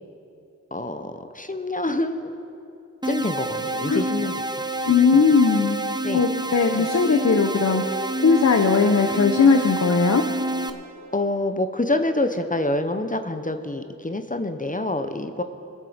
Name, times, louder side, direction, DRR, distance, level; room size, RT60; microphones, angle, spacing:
voice 1, 0.7-2.4 3.0-4.3 4.9-5.2 6.0-6.2 6.8-6.9 11.1-15.4, left 2 dB, 25° left, 8 dB, 0.7 m, -26 dB
sound 1, 3.0-10.7, right 1 dB, 15° right, 0.7 m, -28 dB
voice 2, 4.9-5.8 6.1-10.2, left 5 dB, 60° left, 6 dB, 0.7 m, -19 dB
21.5 x 7.4 x 5.0 m, 2.7 s
wide cardioid pair, 55°, 31 cm